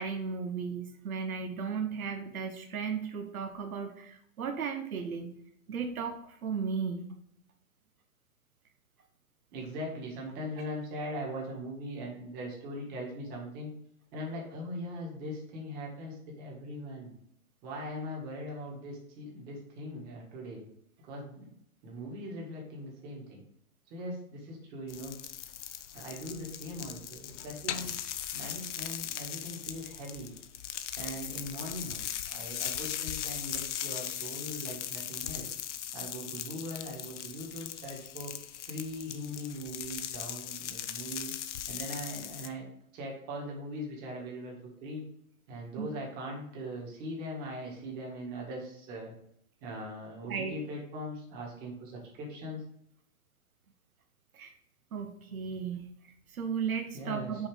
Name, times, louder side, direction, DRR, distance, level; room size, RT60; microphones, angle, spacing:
voice 1, 0.0-5.3 5.7-7.1 45.8-45.9 50.3-50.5 54.3-54.5 54.9-57.5, right 6 dB, 80° right, 5 dB, 1.1 m, -35 dB
voice 2, 9.5-13.7 14.1-17.1 17.6-20.6 21.1-21.5 21.8-23.4 23.9-25.2 25.9-27.9 28.3-30.4 31.0-35.5 35.9-38.3 38.7-41.3 41.7-42.6 42.9-44.6 44.8-45.0 45.5-49.1 49.6-52.6 56.9-57.3, equal, 25° right, -2 dB, 1.8 m, -40 dB
sound 1, 24.9-42.5, left 10 dB, 55° left, 0.7 m, -39 dB
5.7 x 4.2 x 5.0 m, 0.73 s
hypercardioid pair, 155°, 42 cm